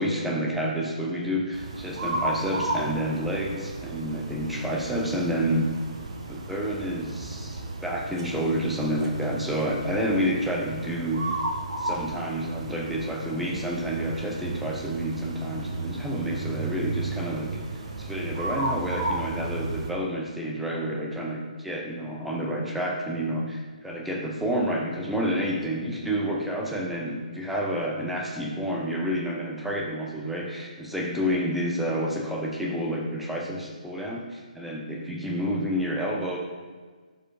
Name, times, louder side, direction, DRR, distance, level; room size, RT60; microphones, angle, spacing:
voice 1, 0.0-5.7 6.3-11.4 11.8-34.2 34.6-36.4, equal, ahead, -2 dB, 0.7 m, -29 dB
sound 1, 1.5-19.9, right 2 dB, 45° right, 0.9 m, -34 dB
12.0 x 4.5 x 2.6 m, 1.5 s
figure-of-eight pair, 140°, 4 cm